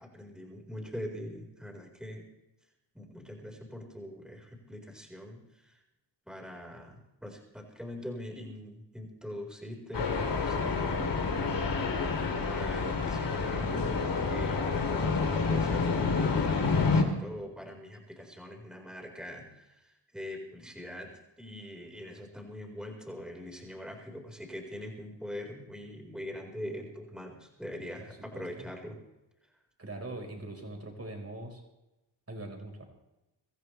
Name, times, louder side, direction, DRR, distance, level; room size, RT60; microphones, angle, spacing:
voice 1, 0.0-2.3 2.9-5.8 6.2-11.9 12.4-29.0, left 1 dB, ahead, 0 dB, 4.7 m, -43 dB
sound 1, 9.9-17.0, left 4 dB, 65° left, 3.1 m, -28 dB
voice 2, 28.3-28.6 29.8-31.6 32.3-32.9, right 2 dB, 35° right, 3 dB, 4.7 m, -42 dB
25.0 x 14.0 x 3.4 m, 0.97 s
cardioid pair, 70°, 45 cm